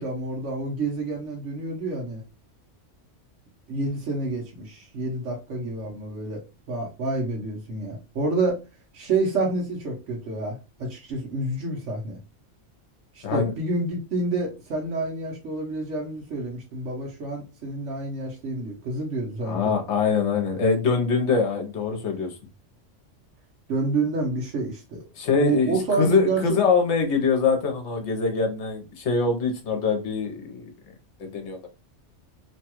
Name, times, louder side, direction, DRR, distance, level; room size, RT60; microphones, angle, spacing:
voice 1, 0.0-2.2 3.7-6.4 6.7-8.6 8.9-12.2 13.1-19.7 23.7-25.0 25.3-26.6, right 3 dB, 70° right, -1 dB, 1.2 m, -28 dB
voice 2, 19.4-22.3 25.2-30.7 31.2-31.7, left 5 dB, 70° left, 4 dB, 1.1 m, -23 dB
3.0 x 2.3 x 2.9 m, 0.28 s
omnidirectional pair, 1.3 m